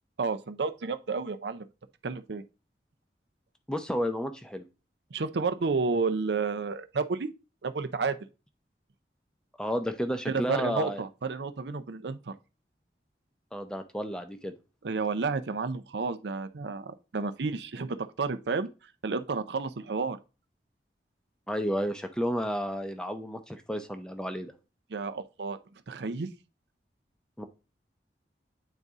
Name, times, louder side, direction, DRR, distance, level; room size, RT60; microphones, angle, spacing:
voice 1, 0.2-1.7 2.0-2.4 5.1-7.3 7.6-8.2 10.3-12.4 14.8-18.7 19.0-20.2 24.9-25.6 25.9-26.3, right 4 dB, 80° right, 0.5 m, -31 dB
voice 2, 3.7-4.6 9.6-11.0 13.5-14.5 21.5-24.5 27.4-27.5, equal, 5° left, 0.6 m, -32 dB
9.1 x 4.0 x 3.6 m
head